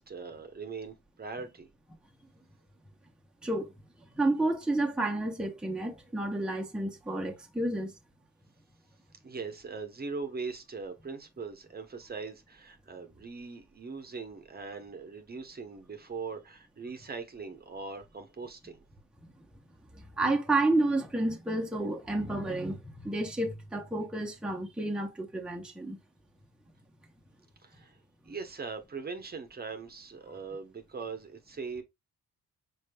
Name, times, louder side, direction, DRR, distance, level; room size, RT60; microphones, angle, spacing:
voice 1, 0.0-1.7 9.2-18.8 27.6-28.0 28.2-31.8, right 4 dB, 30° right, 0.9 m, -41 dB
voice 2, 4.1-7.9 20.0-26.0, right 2 dB, 5° right, 0.9 m, -30 dB
5.1 x 4.2 x 2.3 m
cardioid pair, 90°, 30 cm